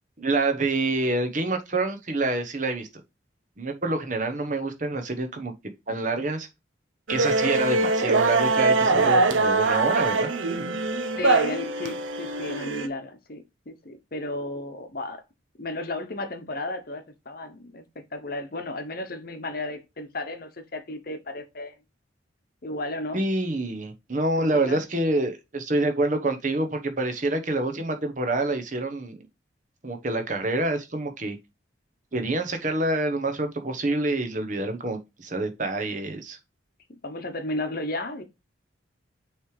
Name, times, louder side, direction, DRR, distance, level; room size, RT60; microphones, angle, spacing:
voice 1, 0.2-2.9 3.6-5.5 5.9-6.5 7.1-10.3 23.1-29.3 29.8-31.4 32.1-36.4, right 2 dB, 40° right, 1.1 m, -27 dB
sound 1, 7.1-12.9, right 3 dB, 85° right, 0.8 m, -23 dB
voice 2, 8.7-9.2 11.2-15.2 15.6-21.8 22.6-23.2 24.5-24.8 37.0-38.2, left 2 dB, 50° left, 1.0 m, -34 dB
6.3 x 3.3 x 4.8 m
head